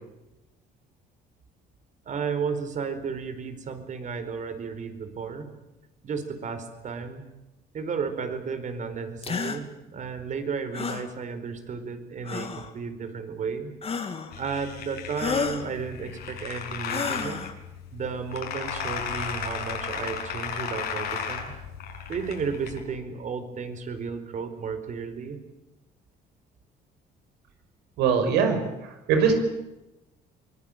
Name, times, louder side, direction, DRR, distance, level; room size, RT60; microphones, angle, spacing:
voice 1, 2.0-5.5 6.0-7.3 7.7-13.7 14.4-17.4 17.9-21.5 22.1-25.4, right 5 dB, 45° right, 9 dB, 4.5 m, -33 dB
sound 1, 9.2-9.6 10.7-11.1 12.2-12.7 13.8-14.3 15.1-15.7 16.9-17.5, left 5 dB, 35° left, 2.7 m, -30 dB
sound 2, 14.3-22.8, left 7 dB, 70° left, 6.6 m, -35 dB
voice 2, 28.0-29.3, right 6 dB, 90° right, 6 dB, 5.9 m, -22 dB
24.5 x 20.0 x 9.1 m, 0.97 s
cardioid pair, 110°, 17 cm